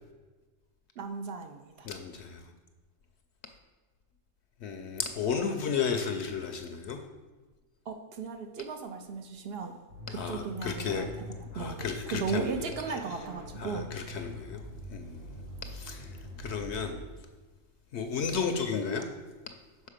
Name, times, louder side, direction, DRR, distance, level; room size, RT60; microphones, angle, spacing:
voice 1, 1.0-1.9 7.9-9.7 10.1-11.1 11.5-13.9, right 5 dB, 60° right, 7 dB, 0.7 m, -36 dB
voice 2, 1.8-2.5 4.6-7.0 10.1-11.1 11.5-12.7 13.6-14.6 14.9-15.2 15.6-17.0 17.9-19.1, left 6 dB, 65° left, 6 dB, 0.8 m, -33 dB
sound 1, 9.9-17.0, left 1 dB, 85° right, 1.6 m, -44 dB
6.4 x 4.7 x 4.9 m, 1.3 s
omnidirectional pair, 1.3 m